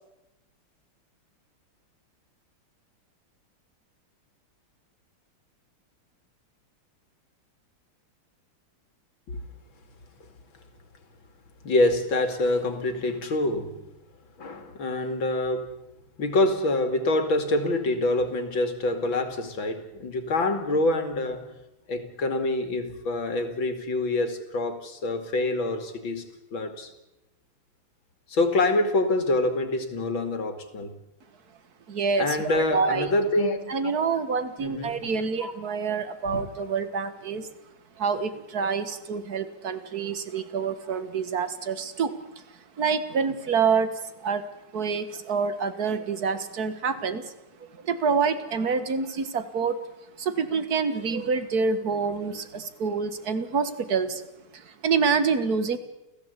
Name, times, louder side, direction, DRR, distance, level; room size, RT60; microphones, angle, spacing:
voice 1, 11.6-13.7 14.4-15.7 16.2-21.5 21.9-26.2 26.5-26.9 28.3-30.9 32.2-33.7 34.6-35.1 35.4-35.5 36.3-36.4, left 2 dB, 60° left, 7 dB, 3.1 m, -26 dB
voice 2, 31.9-33.1 33.7-37.5 38.0-44.4 44.7-47.3 47.6-49.8 50.2-54.3 54.5-55.8, right 5 dB, 45° right, 11 dB, 2.0 m, -27 dB
29.5 x 15.5 x 8.3 m, 0.94 s
omnidirectional pair, 2.4 m